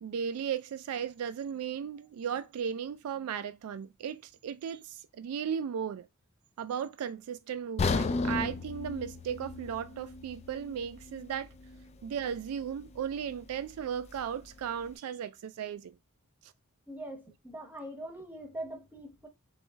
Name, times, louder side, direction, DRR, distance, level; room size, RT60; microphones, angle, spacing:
voice 1, 0.0-6.1 6.6-11.5 12.0-16.0 16.4-16.5, right 8 dB, 70° right, 0.3 m, -36 dB
sound 1, 7.8-11.8 12.2-12.4 12.9-13.0, left 3 dB, 30° left, 0.3 m, -34 dB
voice 2, 16.9-19.3, right 1 dB, 10° right, 0.9 m, -42 dB
3.2 x 3.1 x 3.4 m
head